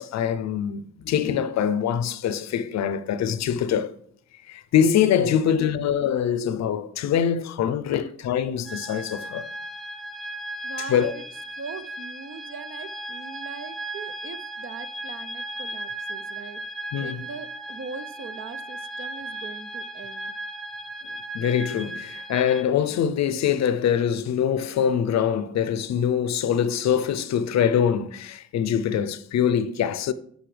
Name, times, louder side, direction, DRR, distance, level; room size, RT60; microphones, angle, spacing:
voice 1, 0.0-4.0 4.5-9.5 10.9-11.1 16.9-17.2 21.3-30.1, left 8 dB, 65° left, 0.6 m, -24 dB
voice 2, 5.2-5.8 7.9-8.1 10.6-11.2 11.6-16.6 17.0-20.3, right 5 dB, 45° right, 0.7 m, -41 dB
sound 1, 8.7-22.6, right 1 dB, ahead, 0.5 m, -36 dB
10.0 x 5.4 x 3.3 m
cardioid pair, 90°, 30 cm